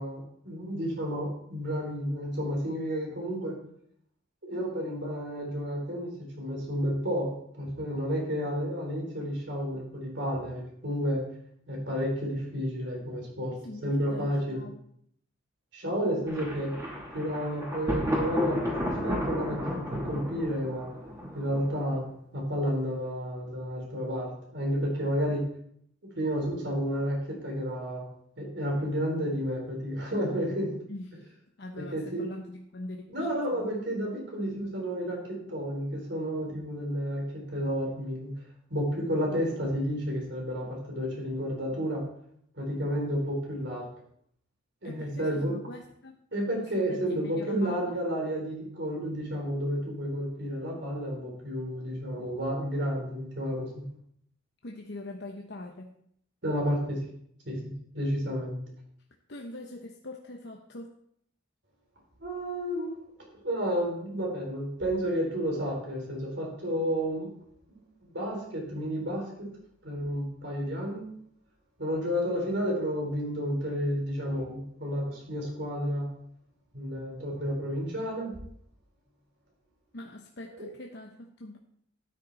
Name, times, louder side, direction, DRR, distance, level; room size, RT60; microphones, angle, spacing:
voice 1, 0.0-3.6 4.4-6.1 6.4-11.2 11.7-13.5 13.8-14.6 15.7-16.7 17.1-20.9 21.3-22.1 22.3-25.4 26.2-28.0 28.4-30.7 31.7-32.2 33.1-38.3 38.7-42.0 42.6-43.8 44.8-45.5 46.3-53.8 56.4-57.0 57.4-57.6 57.9-58.6 62.2-63.0 63.4-67.4 68.1-69.5 69.8-71.1 71.8-76.1 76.7-78.3 80.5-80.7, equal, 60° right, 0 dB, 4.1 m, -31 dB
voice 2, 13.6-14.8 30.9-31.3 31.6-33.7 44.8-46.2 46.6-47.9 54.6-55.9 59.3-61.0 79.9-81.6, left 2 dB, 60° left, 2 dB, 0.9 m, -43 dB
Thunder, 16.3-22.1, equal, 15° right, 2.9 m, -33 dB
12.5 x 9.8 x 4.2 m, 0.68 s
head